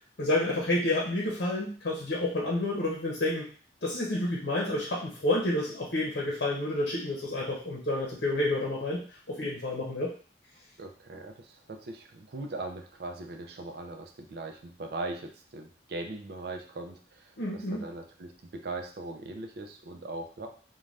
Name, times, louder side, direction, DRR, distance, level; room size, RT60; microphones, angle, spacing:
voice 1, 0.2-3.5 3.8-10.1 17.4-17.8, left 1 dB, 70° left, -3 dB, 0.7 m, -29 dB
voice 2, 10.8-20.5, right 2 dB, 60° right, 4 dB, 0.4 m, -40 dB
2.5 x 2.2 x 3.2 m, 0.42 s
head